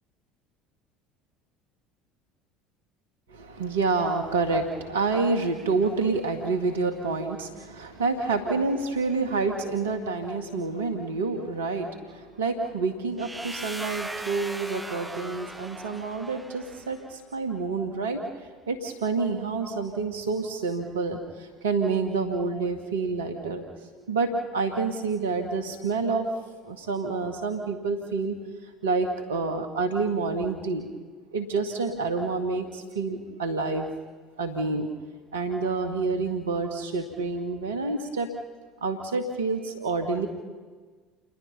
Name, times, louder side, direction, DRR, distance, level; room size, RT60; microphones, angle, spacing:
voice 1, 3.3-23.6 24.1-26.3 26.6-28.4 28.6-30.8 31.3-33.9 34.4-34.9 35.3-38.3 38.8-40.3, right 4 dB, 80° right, 5 dB, 2.2 m, -28 dB
sound 1, 13.2-17.0, right 1 dB, 10° right, 1.6 m, -39 dB
29.5 x 22.0 x 5.7 m, 1.4 s
hypercardioid pair, 65°, 0 cm